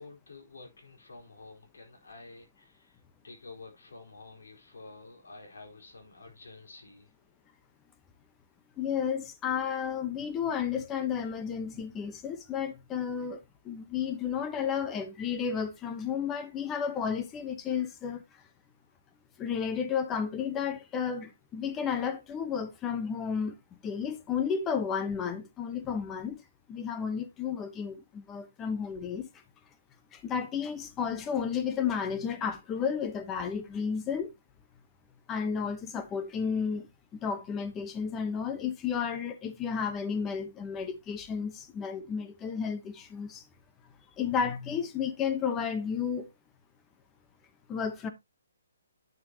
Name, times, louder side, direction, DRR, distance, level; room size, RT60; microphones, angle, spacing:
voice 1, 0.0-7.1, left 3 dB, 90° left, 4.2 m, -50 dB
voice 2, 8.8-13.4 13.6-18.2 19.4-23.5 23.8-26.4 26.7-29.3 30.1-34.3 35.3-36.9 37.1-43.4 44.2-46.3 47.7-48.1, left 7 dB, 15° left, 1.0 m, -32 dB
9.3 x 7.4 x 2.9 m
hypercardioid pair, 165°, 0 cm